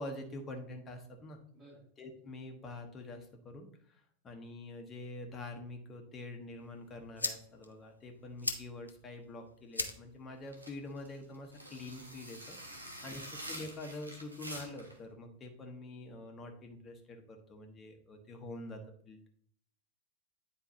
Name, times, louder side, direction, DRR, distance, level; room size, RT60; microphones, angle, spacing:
voice 1, 0.0-1.4 2.0-13.2 13.5-19.3, left 2 dB, 25° left, 4 dB, 1.1 m, -46 dB
sound 1, 6.6-12.6, left 2 dB, 80° left, 0.6 m, -43 dB
sound 2, 10.5-15.0, right 1 dB, 85° right, 1.1 m, -47 dB
voice 2, 12.8-13.2, right 1 dB, 25° right, -9 dB, 3.1 m, -57 dB
9.2 x 4.5 x 2.8 m, 0.62 s
figure-of-eight pair, 90°, 0 cm